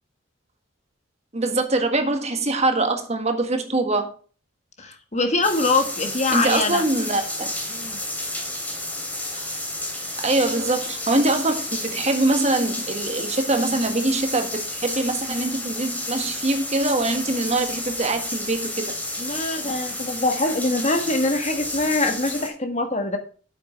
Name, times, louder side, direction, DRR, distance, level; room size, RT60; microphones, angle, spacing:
voice 1, 1.3-4.1 6.3-7.5 9.3-9.5 10.2-18.9, right 2 dB, 35° right, 1.6 m, -23 dB
voice 2, 4.8-6.8 7.7-8.0 19.2-23.2, left 2 dB, 35° left, 1.6 m, -23 dB
sound 1, 5.4-22.5, left 1 dB, 10° left, 2.9 m, -31 dB
9.1 x 7.7 x 4.4 m
head